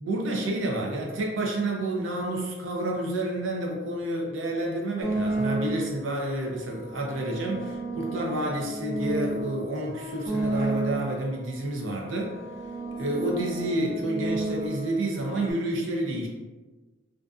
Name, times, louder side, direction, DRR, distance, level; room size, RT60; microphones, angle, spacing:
voice 1, 0.0-12.4 13.0-16.3, right 1 dB, 85° right, -1 dB, 0.6 m, -29 dB
sound 1, 5.0-6.1 6.9-11.4 12.1-15.5, right 2 dB, 20° right, 0.5 m, -32 dB
2.5 x 2.4 x 2.3 m, 1.3 s
head